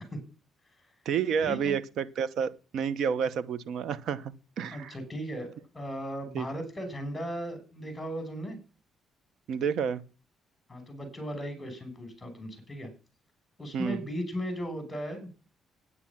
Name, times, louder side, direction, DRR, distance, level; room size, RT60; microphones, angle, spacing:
voice 1, 1.0-4.9 6.3-6.5 9.5-10.0 13.7-14.0, right 7 dB, 75° right, 15 dB, 1.0 m, -30 dB
voice 2, 4.7-8.6 10.7-12.9 13.6-15.3, equal, 15° left, 8 dB, 5.9 m, -37 dB
9.9 x 9.6 x 7.3 m, 0.36 s
cardioid pair, 90°, 0 cm